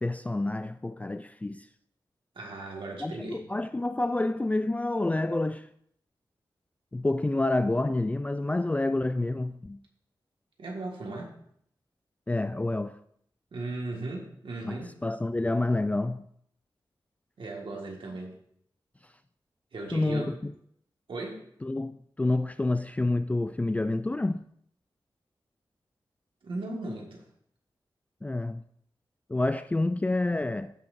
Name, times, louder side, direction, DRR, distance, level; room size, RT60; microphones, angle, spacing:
voice 1, 0.0-1.7 3.0-5.7 6.9-9.8 12.3-13.0 14.7-16.2 19.9-20.5 21.6-24.4 28.2-28.6 29.3-30.7, left 2 dB, 15° left, 0.3 m, -28 dB
voice 2, 2.4-3.4 10.6-11.3 13.5-15.0 17.4-18.4 19.7-20.4 21.1-21.5 26.4-27.2, right 2 dB, 80° right, 1.8 m, -37 dB
16.5 x 5.8 x 2.6 m
wide cardioid pair, 95°, 9 cm